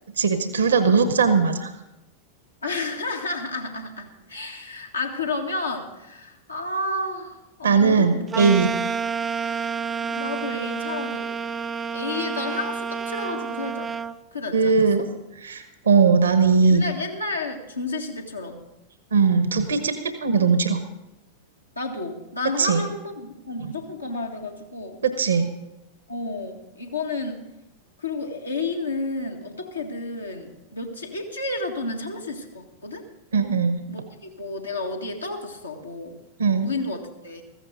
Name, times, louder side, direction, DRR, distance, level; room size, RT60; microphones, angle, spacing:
voice 1, 0.2-1.7 7.6-8.7 14.5-15.1 15.4-16.8 19.1-20.8 22.6-22.8 23.6-23.7 25.0-25.5 33.3-33.8 36.4-36.7, right 5 dB, 70° right, 9 dB, 1.1 m, -19 dB
voice 2, 2.6-8.3 10.0-11.3 11.9-13.9 14.3-14.9 16.6-18.7 21.8-25.0 26.1-27.4 28.0-33.0 33.9-36.2 36.5-37.4, left 2 dB, 80° left, 1 dB, 1.8 m, -31 dB
sound 1, 8.3-14.2, right 6 dB, 15° right, 0.5 m, -29 dB
14.5 x 14.5 x 3.9 m, 0.96 s
figure-of-eight pair, 90°, 0 cm